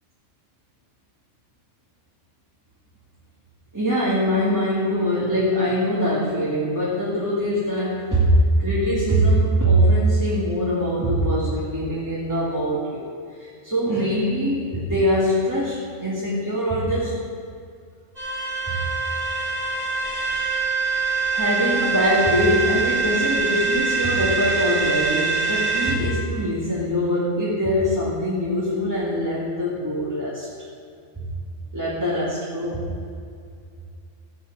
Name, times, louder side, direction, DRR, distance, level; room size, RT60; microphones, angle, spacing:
voice 1, 3.7-13.1 13.4-17.1 18.7-18.8 21.3-30.5 31.7-32.9, equal, 15° right, -8 dB, 2.1 m, -22 dB
sound 1, 18.2-25.9, right 4 dB, 80° right, 4.5 m, -24 dB
15.5 x 6.0 x 8.9 m, 2.3 s
omnidirectional pair, 1.3 m